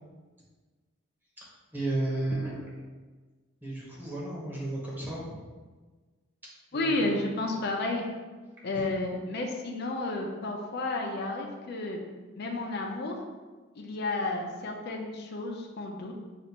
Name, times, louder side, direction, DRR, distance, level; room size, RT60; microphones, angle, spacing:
voice 1, 1.7-2.8 3.6-5.4 6.7-7.3 8.7-8.9, right 2 dB, 10° right, -6 dB, 1.1 m, -33 dB
voice 2, 6.7-8.1 8.6-12.0 12.4-13.2 13.8-16.1, left 2 dB, 55° left, 1 dB, 0.5 m, -32 dB
5.4 x 2.5 x 2.9 m, 1.3 s
head